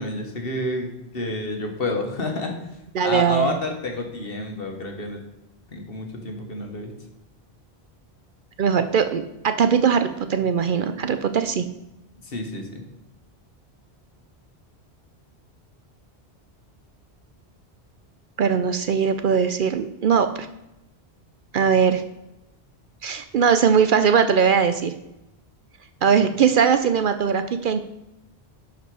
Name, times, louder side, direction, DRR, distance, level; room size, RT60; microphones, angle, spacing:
voice 1, 0.0-2.6 3.0-5.2 5.7-6.9 12.2-12.8, left 1 dB, 60° left, 3 dB, 1.6 m, -29 dB
voice 2, 2.9-3.6 8.6-11.6 18.4-20.5 21.5-22.0 23.0-24.9 26.0-27.8, right 6 dB, 60° right, 9 dB, 0.6 m, -20 dB
11.0 x 5.0 x 4.8 m, 0.91 s
omnidirectional pair, 1.1 m